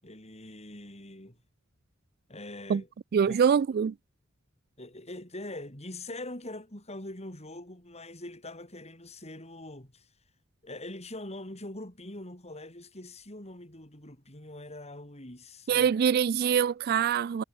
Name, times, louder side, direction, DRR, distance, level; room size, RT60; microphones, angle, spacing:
voice 1, 0.0-1.4 2.3-2.9 3.3-3.4 4.8-10.1 10.6-15.9, left 1 dB, 30° left, 8.0 m, -43 dB
voice 2, 3.1-3.9 15.7-17.4, right 7 dB, 50° right, 0.3 m, -24 dB
head